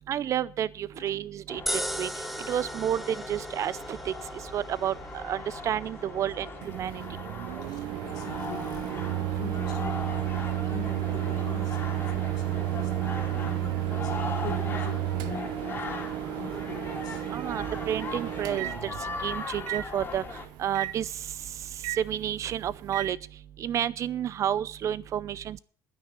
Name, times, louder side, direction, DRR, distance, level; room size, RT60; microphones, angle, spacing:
voice 1, 0.1-2.1 2.5-4.1 4.5-6.5 6.7-7.0 17.3-20.2 20.6-21.1 22.0-23.2 23.6-25.6, right 10 dB, 45° right, 20 dB, 0.6 m, -30 dB
sound 1, 1.5-20.5, left 4 dB, 30° left, 2.7 m, -39 dB
sound 2, 1.7-14.0, equal, ahead, 0.7 m, -41 dB
Microwave oven, 6.6-23.1, right 14 dB, 75° right, 0.8 m, -32 dB
voice 2, 7.6-10.2 10.7-16.0 16.3-17.3, left 9 dB, 65° left, 6 dB, 2.4 m, -44 dB
9.9 x 9.5 x 7.1 m, 0.43 s
cardioid pair, 125°, 7 cm